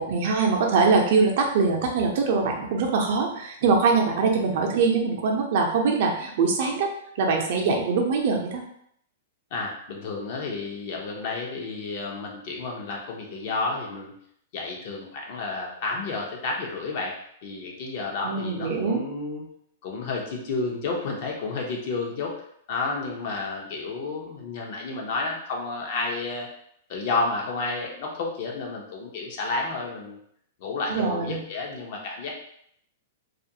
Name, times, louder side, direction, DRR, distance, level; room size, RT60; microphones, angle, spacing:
voice 1, 0.0-6.9 7.2-8.6 18.2-19.0 30.9-31.4, right 4 dB, 55° right, 1 dB, 0.6 m, -23 dB
voice 2, 9.5-14.1 14.5-17.2 17.4-19.5 19.8-22.3 22.7-26.5 26.9-30.2 30.6-32.3, left 3 dB, 50° left, -1 dB, 0.7 m, -31 dB
2.4 x 2.2 x 2.7 m, 0.69 s
hypercardioid pair, 145°, 0 cm